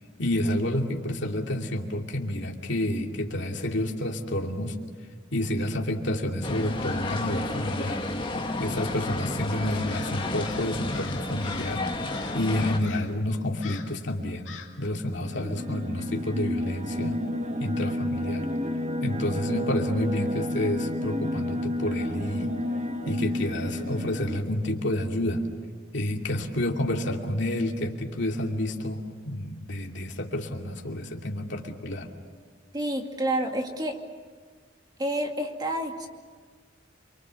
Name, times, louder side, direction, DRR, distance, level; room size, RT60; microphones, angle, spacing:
voice 1, 0.2-4.7 5.3-8.0 8.6-11.8 12.3-17.2 17.6-18.5 19.0-22.5 23.0-25.4 25.9-32.1, left 1 dB, 65° left, 2 dB, 2.6 m, -29 dB
sound 1, 6.4-12.8, left 2 dB, 25° left, 1.8 m, -32 dB
Crow, 9.9-11.8 12.1-12.5 12.8-13.2 13.6-14.0 14.5-14.8, left 7 dB, 85° left, 2.3 m, -44 dB
sound 2, 15.2-24.4, left 1 dB, 35° right, 1.5 m, -31 dB
voice 2, 32.7-34.0 35.0-36.1, right 1 dB, 20° right, 3 dB, 2.3 m, -29 dB
28.5 x 24.0 x 7.1 m, 1.6 s
head